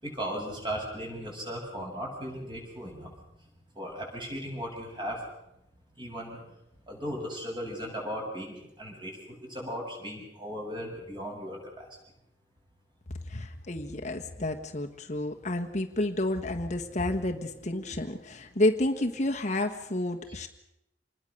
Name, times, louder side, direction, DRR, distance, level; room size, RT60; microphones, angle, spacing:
voice 1, 0.0-3.1 3.8-5.2 6.0-6.4 6.9-11.9, equal, 25° right, -1 dB, 7.8 m, -37 dB
voice 2, 13.2-20.5, left 1 dB, 40° left, 4 dB, 1.4 m, -30 dB
27.0 x 20.5 x 6.6 m, 0.85 s
head